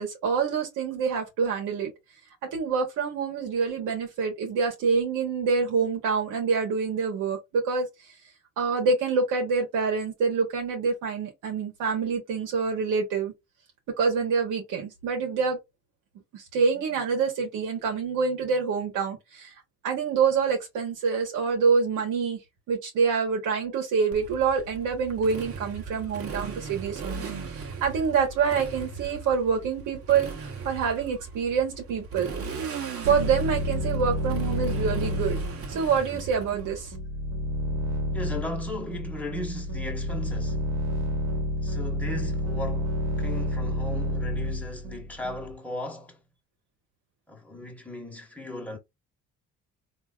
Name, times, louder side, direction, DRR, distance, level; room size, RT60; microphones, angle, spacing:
voice 1, 0.0-1.9 2.5-7.9 8.6-13.3 14.0-15.6 16.3-19.5 19.8-22.4 22.7-32.3 33.0-35.4 35.7-36.9, right 5 dB, 85° right, 1.1 m, -26 dB
Motorcycle, 24.1-37.0, right 5 dB, 50° right, 1.1 m, -38 dB
sound 1, 33.0-45.5, left 1 dB, 65° right, 1.3 m, -30 dB
voice 2, 38.1-40.7 41.6-46.2 47.3-48.8, left 1 dB, 5° left, 1.3 m, -37 dB
3.5 x 2.7 x 2.3 m
cardioid pair, 90°, 30 cm